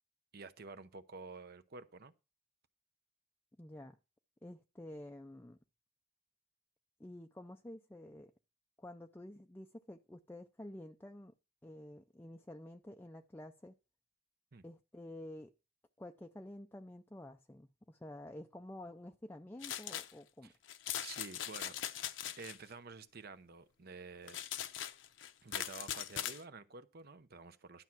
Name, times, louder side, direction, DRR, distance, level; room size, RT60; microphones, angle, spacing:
voice 1, 0.3-2.1 14.5-14.6 20.4-20.5 21.0-21.8 22.4-24.4 25.4-27.8, right 4 dB, 50° right, 0.8 m, -50 dB
voice 2, 3.6-4.0 4.4-5.6 7.0-8.3 8.8-11.3 11.6-13.7 14.6-15.5 16.0-20.5, left 1 dB, 10° left, 0.5 m, -50 dB
sound 1, 19.6-20.1 20.7-22.6 24.3-26.4, left 10 dB, 70° left, 0.8 m, -41 dB
12.0 x 5.7 x 6.0 m
head